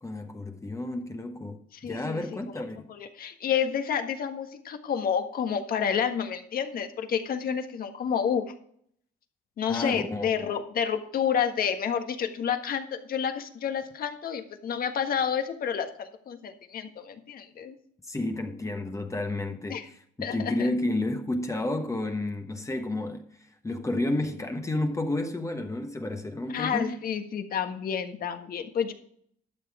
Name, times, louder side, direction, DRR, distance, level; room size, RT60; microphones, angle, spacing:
voice 1, 0.0-2.9 9.6-10.3 18.0-23.3 23.6-26.9, left 2 dB, 15° left, 1.2 m, -31 dB
voice 2, 1.7-2.6 2.9-8.5 9.6-17.7 19.7-19.9 20.2-20.7 26.5-28.9, left 7 dB, 55° left, 1.6 m, -30 dB
12.0 x 7.1 x 4.9 m
cardioid pair, 95°, 18 cm